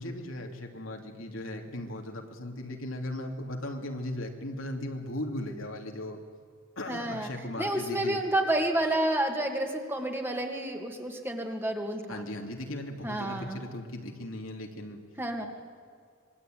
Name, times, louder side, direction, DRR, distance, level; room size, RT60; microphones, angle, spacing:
voice 1, 0.0-6.2 6.8-8.2 12.1-15.0, left 1 dB, 75° left, 3 dB, 3.2 m, -37 dB
voice 2, 6.9-12.2 13.0-13.6 15.2-15.5, right 1 dB, 10° right, 3 dB, 2.5 m, -30 dB
26.0 x 22.0 x 9.5 m, 2.2 s
head